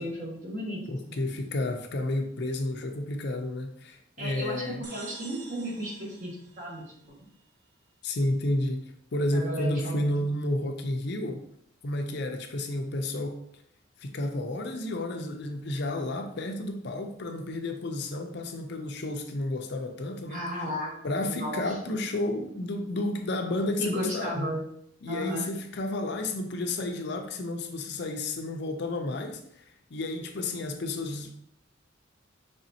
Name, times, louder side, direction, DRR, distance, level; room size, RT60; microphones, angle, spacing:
voice 1, 0.0-1.2 4.2-4.6 4.9-7.1 9.3-10.1 20.3-21.8 23.8-24.6 25.1-25.5, equal, 40° right, -3 dB, 1.3 m, -34 dB
voice 2, 0.9-4.8 8.0-8.8 9.1-11.4 11.8-13.4 14.0-20.4 21.0-24.5 25.0-29.6 29.9-31.3, left 1 dB, 60° left, 5 dB, 0.5 m, -31 dB
sound 1, 4.8-7.4, right 3 dB, 60° right, 1.0 m, -48 dB
5.1 x 3.4 x 2.7 m, 0.71 s
head